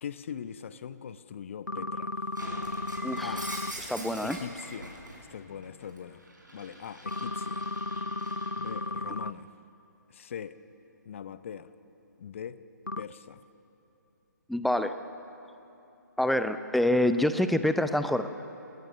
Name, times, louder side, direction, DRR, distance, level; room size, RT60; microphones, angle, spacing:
voice 1, 0.0-2.2 2.6-2.7 3.2-3.5 4.2-6.2 6.5-7.7 8.6-9.5 10.1-10.6 11.0-11.7 12.2-12.6 13.0-13.4, left 8 dB, 40° left, 14 dB, 0.8 m, -41 dB
sound 1, 1.7-3.7 7.1-9.3 12.9-13.0, left 2 dB, 90° left, 0.4 m, -34 dB
Shatter, 2.3-5.2 5.6-8.8, right 1 dB, 80° right, 6.4 m, -43 dB
voice 2, 3.0-3.5 3.9-4.4 14.5-15.0 16.2-18.3, left 1 dB, ahead, 10 dB, 0.4 m, -26 dB
28.0 x 19.0 x 6.5 m, 2.9 s
figure-of-eight pair, 135°, 10 cm